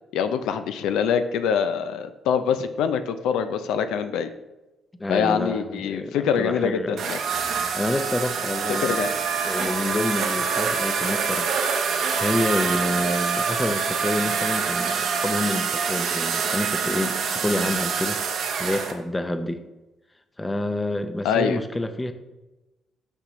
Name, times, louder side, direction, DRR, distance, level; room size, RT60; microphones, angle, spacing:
voice 1, 0.1-4.3 5.1-7.2 8.7-9.1 21.2-21.6, left 7 dB, 90° left, 9 dB, 0.4 m, -24 dB
voice 2, 5.0-7.0 7.7-9.1 9.4-11.6 12.2-19.6 20.4-22.1, left 1 dB, 15° left, 9 dB, 0.6 m, -28 dB
sound 1, 7.0-18.9, right 6 dB, 75° right, 0.8 m, -26 dB
6.6 x 6.0 x 3.1 m, 1.1 s
cardioid pair, 90°, 0 cm